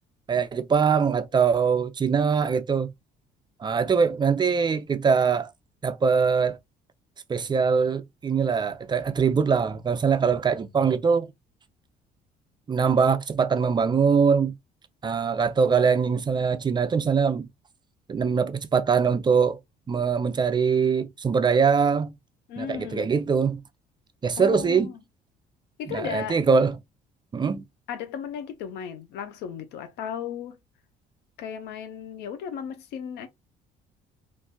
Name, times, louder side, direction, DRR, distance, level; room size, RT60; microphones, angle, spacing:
voice 1, 0.3-2.9 3.6-5.5 5.8-6.6 7.3-11.3 12.7-14.5 15.0-17.5 18.1-19.6 19.9-22.1 22.6-23.6 24.2-24.9 25.9-26.8 27.3-27.6, right 6 dB, 25° right, 0.5 m, -22 dB
voice 2, 22.5-23.1 24.4-25.0 25.8-26.4 27.9-30.6 31.4-33.3, left 8 dB, 90° left, 0.7 m, -35 dB
3.7 x 2.6 x 2.2 m
cardioid pair, 110°, 17 cm